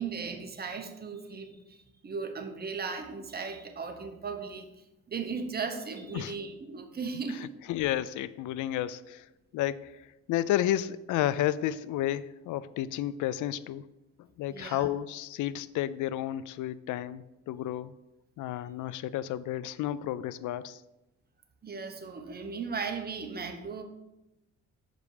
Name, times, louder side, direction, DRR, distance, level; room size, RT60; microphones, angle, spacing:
voice 1, 0.0-7.5 14.5-14.9 21.6-23.8, right 5 dB, 30° right, 5 dB, 1.1 m, -37 dB
voice 2, 7.3-9.3 9.5-13.9 14.2-17.9 18.4-20.8, left 12 dB, 80° left, 17 dB, 0.5 m, -32 dB
6.6 x 5.2 x 4.9 m, 0.96 s
cardioid pair, 90°, 30 cm